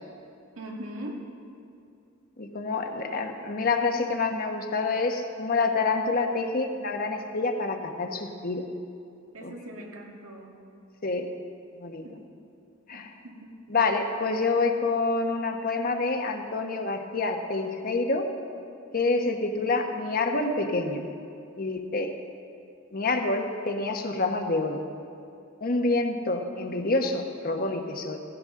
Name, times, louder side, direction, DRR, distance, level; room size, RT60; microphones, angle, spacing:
voice 1, 0.6-1.3 9.3-10.6 12.0-12.3 12.9-13.6, right 1 dB, 85° right, 0 dB, 1.9 m, -41 dB
voice 2, 2.4-8.7 9.4-9.5 11.0-11.3 11.8-12.0 12.9-13.1 13.7-18.3 18.9-21.1 21.6-22.1 22.9-24.8 25.6-28.2, left 3 dB, 45° left, 5 dB, 1.1 m, -27 dB
17.0 x 16.0 x 3.8 m, 2.5 s
head